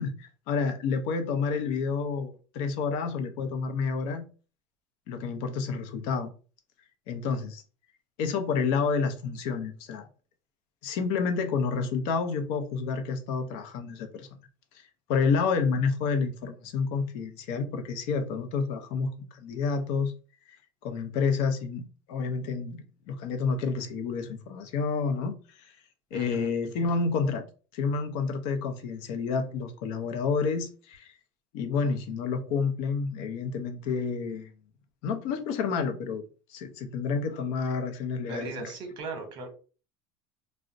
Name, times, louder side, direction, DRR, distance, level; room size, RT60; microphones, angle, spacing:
voice 1, 0.0-4.3 5.1-6.3 7.1-7.6 8.2-10.1 10.8-14.3 15.1-20.1 20.8-25.7 26.1-27.5 27.7-31.1 31.5-34.5 35.0-36.2 36.5-38.7, left 5 dB, 60° left, 0.6 m, -29 dB
voice 2, 26.1-26.5 38.3-39.5, right 3 dB, 35° right, 0.9 m, -37 dB
2.4 x 2.1 x 3.8 m
cardioid pair, 160°, 13 cm